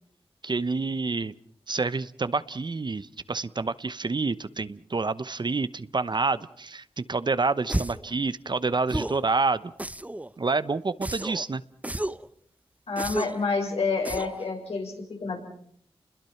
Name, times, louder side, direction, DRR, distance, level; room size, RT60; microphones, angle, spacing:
voice 1, 0.4-1.3 1.7-9.7 10.4-11.6, right 3 dB, 45° right, 15 dB, 0.9 m, -28 dB
sound 1, 7.7-8.1 8.9-9.3 9.8-10.3 11.0-11.5 11.8-12.3 13.0-13.5 14.1-14.4, right 1 dB, 15° right, 1.0 m, -31 dB
voice 2, 12.9-15.4, left 4 dB, 75° left, 1 dB, 7.0 m, -28 dB
30.0 x 21.5 x 5.8 m, 0.62 s
cardioid pair, 55°, 10 cm